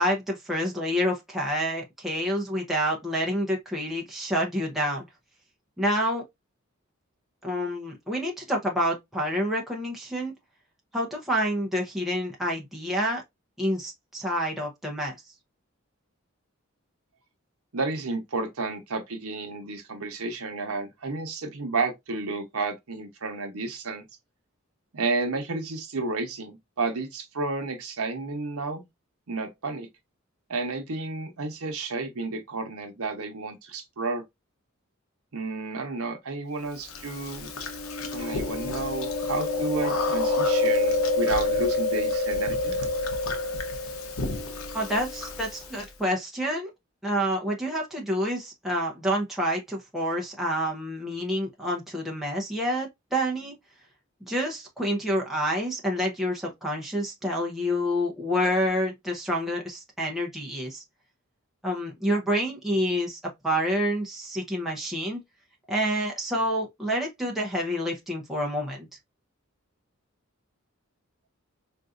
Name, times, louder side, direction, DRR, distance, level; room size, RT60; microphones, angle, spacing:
voice 1, 0.0-5.1 5.8-6.2 7.4-10.3 10.9-13.2 13.6-15.2 44.7-46.7 47.0-53.5 54.2-60.8 61.6-65.2 65.7-68.9, equal, ahead, 0.7 m, -28 dB
voice 2, 17.7-24.0 24.9-28.8 29.3-29.9 30.5-34.2 35.3-37.5 38.1-42.7, right 3 dB, 80° right, 0.9 m, -31 dB
Chewing mastication, 36.9-45.8, left 2 dB, 80° left, 0.8 m, -27 dB
3.9 x 2.6 x 2.4 m
head